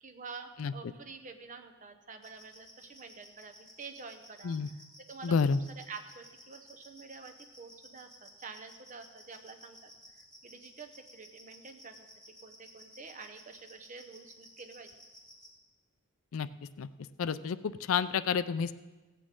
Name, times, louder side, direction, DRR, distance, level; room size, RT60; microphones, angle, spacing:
voice 1, 0.0-4.8 5.0-5.3 5.8-12.1 12.4-14.9, right 4 dB, 35° right, 6 dB, 0.9 m, -48 dB
sound 1, 2.2-15.5, equal, 5° left, 2.7 m, -54 dB
voice 2, 5.2-5.6 16.3-16.5 16.8-16.9 17.2-18.7, left 6 dB, 70° left, 14 dB, 0.4 m, -29 dB
16.5 x 8.4 x 3.7 m, 1.2 s
head